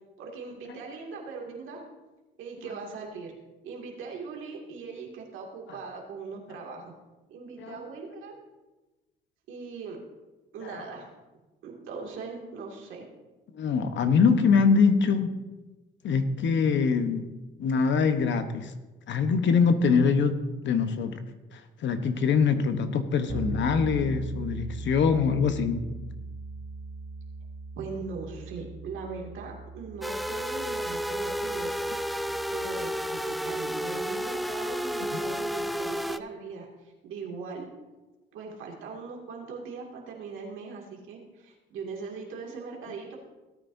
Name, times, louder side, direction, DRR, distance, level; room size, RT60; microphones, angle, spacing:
voice 1, 0.2-1.8 2.4-3.3 3.6-6.9 7.3-8.4 9.5-10.0 10.5-11.1 11.6-13.1 27.7-32.2 32.5-37.7 38.3-43.2, right 4 dB, 85° right, -1 dB, 2.4 m, -40 dB
voice 2, 13.5-15.3 16.0-17.3 17.6-18.7 19.1-20.4 20.6-21.2 21.5-25.8 35.1-35.2, left 5 dB, 65° left, 9 dB, 1.0 m, -24 dB
Bass guitar, 23.3-32.9, right 3 dB, 35° right, 1.5 m, -39 dB
sound 1, 30.0-36.2, equal, ahead, 0.4 m, -31 dB
17.0 x 9.3 x 2.7 m, 1.1 s
cardioid pair, 90°, 20 cm